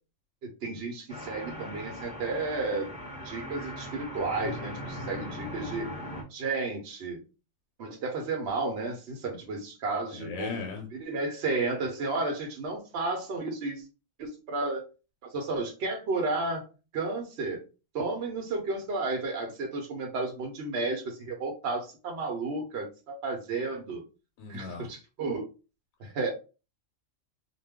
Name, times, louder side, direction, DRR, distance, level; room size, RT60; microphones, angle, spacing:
voice 1, 0.6-2.9 3.2-5.9 6.3-7.2 7.8-10.6 10.9-13.8 14.2-14.8 15.2-16.6 16.9-17.6 17.9-24.0 24.5-25.5 26.0-26.3, right 3 dB, 60° right, 1 dB, 0.9 m, -32 dB
sound 1, 1.1-6.2, equal, 5° right, 0.7 m, -39 dB
voice 2, 10.1-10.9 24.4-24.9, left 4 dB, 90° left, 2 dB, 1.0 m, -37 dB
2.4 x 2.2 x 3.4 m, 0.32 s
omnidirectional pair, 1.4 m